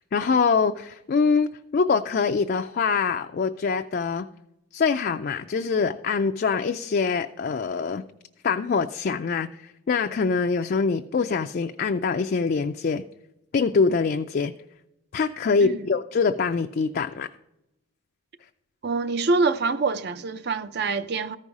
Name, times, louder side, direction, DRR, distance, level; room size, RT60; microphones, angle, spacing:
voice 1, 0.1-4.3 4.7-8.0 8.4-13.0 13.5-14.5 15.1-17.3, left 5 dB, 45° left, 0.3 m, -24 dB
voice 2, 18.8-21.4, right 3 dB, 50° right, 0.5 m, -25 dB
14.0 x 5.5 x 4.8 m
head